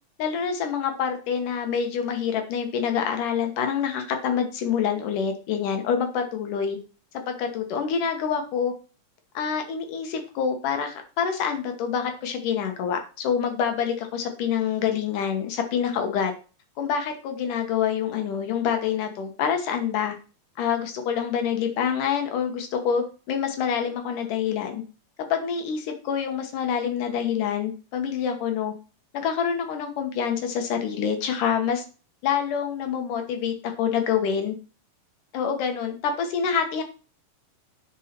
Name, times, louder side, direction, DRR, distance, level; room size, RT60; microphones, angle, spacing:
voice 1, 0.2-6.8 7.3-8.7 9.3-16.3 16.8-20.1 20.6-24.8 25.3-28.7 29.1-31.8 32.2-34.5 35.3-36.8, left 7 dB, 70° left, 5 dB, 2.7 m, -26 dB
9.2 x 5.3 x 4.4 m, 0.35 s
omnidirectional pair, 4.0 m